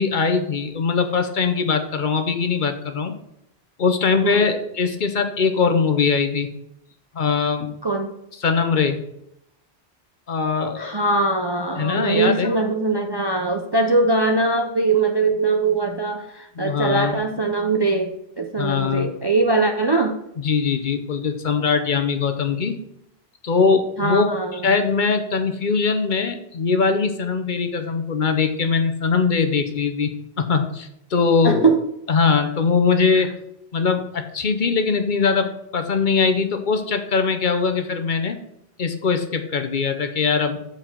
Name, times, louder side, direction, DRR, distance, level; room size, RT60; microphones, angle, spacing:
voice 1, 0.0-3.1 3.8-6.5 7.1-7.7 8.4-9.0 10.3-10.9 11.8-12.5 16.6-17.2 18.6-19.1 20.4-22.8 23.4-24.3 24.5-30.1 30.4-31.7 32.1-33.3 33.7-38.4 38.8-40.6, left 5 dB, 50° left, 7 dB, 0.8 m, -21 dB
voice 2, 7.8-8.1 10.8-20.2 24.0-24.7 31.4-31.8 33.1-33.3, right 3 dB, 35° right, 4 dB, 0.4 m, -21 dB
6.9 x 4.6 x 5.8 m, 0.77 s
omnidirectional pair, 1.1 m